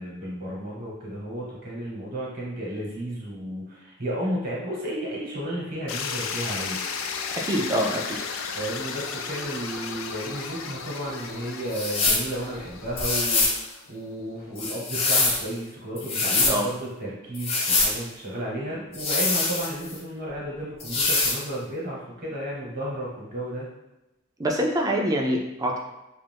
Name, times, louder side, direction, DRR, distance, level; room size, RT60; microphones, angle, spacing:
voice 1, 0.0-6.8 8.5-23.7, right 1 dB, 50° right, -4 dB, 1.0 m, -33 dB
sound 1, 5.9-13.9, left 5 dB, 80° left, 0.3 m, -34 dB
voice 2, 7.3-8.2 16.5-16.7 24.4-25.8, equal, 20° right, 0 dB, 0.4 m, -25 dB
sound 2, 11.7-12.3 13.0-13.6 14.6-15.4 16.0-16.6 17.3-17.9 18.9-20.0 20.8-21.4, left 3 dB, 30° left, 0.5 m, -24 dB
2.4 x 2.4 x 3.4 m, 0.98 s
head